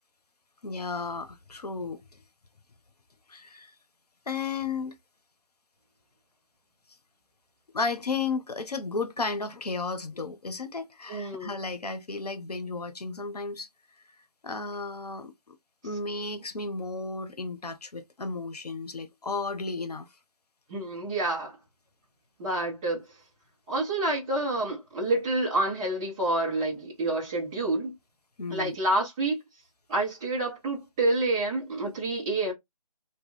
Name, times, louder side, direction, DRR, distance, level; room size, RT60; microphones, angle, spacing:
voice 1, 0.6-2.0 3.3-3.7 4.3-5.0 7.7-13.7 14.4-15.6 15.8-20.1 28.4-28.8, left 4 dB, 90° left, 0.8 m, -33 dB
voice 2, 11.1-11.6 20.7-21.6 22.4-23.1 23.7-27.9 28.5-29.4 29.9-32.5, right 2 dB, 10° right, 0.5 m, -28 dB
2.9 x 2.2 x 3.2 m
figure-of-eight pair, 160°, 20 cm